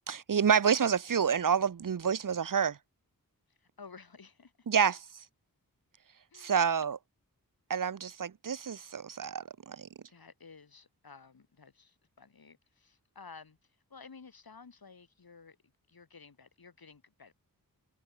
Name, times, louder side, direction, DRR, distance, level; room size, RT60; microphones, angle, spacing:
voice 1, 0.1-2.8 4.7-5.0 6.3-7.0 7.7-9.9, right 7 dB, 65° right, 0.8 m, -28 dB
voice 2, 3.5-4.7 6.3-6.9 10.1-17.3, left 5 dB, 85° left, 3.0 m, -54 dB
wide cardioid pair, 75°, 35 cm